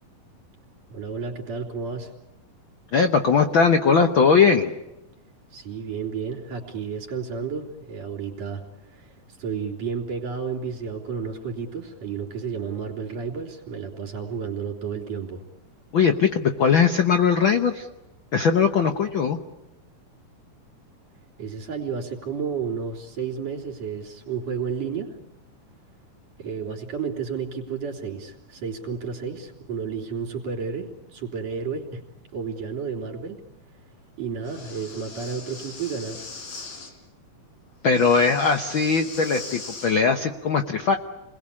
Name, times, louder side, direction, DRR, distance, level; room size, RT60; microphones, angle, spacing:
voice 1, 0.9-2.1 5.5-8.6 8.9-9.1 9.4-15.4 21.4-25.1 26.4-32.0 32.3-33.4 34.2-36.2, right 6 dB, 55° right, 0 dB, 4.7 m, -31 dB
voice 2, 2.9-4.7 15.9-17.9 18.3-19.4 37.8-40.9, left 5 dB, 65° left, 7 dB, 1.2 m, -20 dB
Breathing, 34.4-36.9 37.9-40.0, left 3 dB, 85° left, 5.5 m, -40 dB
30.0 x 21.5 x 8.6 m, 0.93 s
omnidirectional pair, 3.8 m